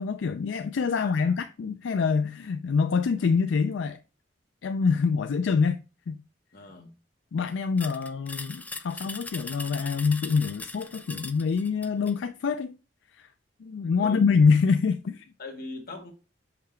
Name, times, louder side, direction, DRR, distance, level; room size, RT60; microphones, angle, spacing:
voice 1, 0.0-4.0 4.6-6.2 7.3-12.8 13.1-13.3 13.6-15.3, left 5 dB, 80° left, 0.4 m, -25 dB
voice 2, 0.9-1.3 6.5-6.9 14.0-14.2 15.4-16.1, left 2 dB, 55° left, 1.7 m, -40 dB
sound 1, 7.8-12.2, left 3 dB, 10° left, 0.4 m, -40 dB
5.8 x 5.6 x 3.3 m
head